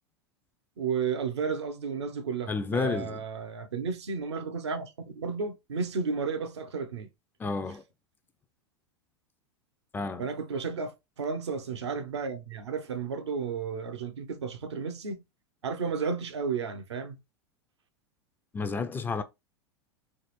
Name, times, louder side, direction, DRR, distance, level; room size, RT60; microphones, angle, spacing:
voice 1, 0.8-7.1 10.2-15.2 15.6-17.2, right 5 dB, 85° right, 0.7 m, -33 dB
voice 2, 2.5-3.2 7.4-7.8 9.9-10.3 18.5-19.2, left 4 dB, 15° left, 0.3 m, -31 dB
3.4 x 2.0 x 3.0 m
hypercardioid pair, 100°, 14 cm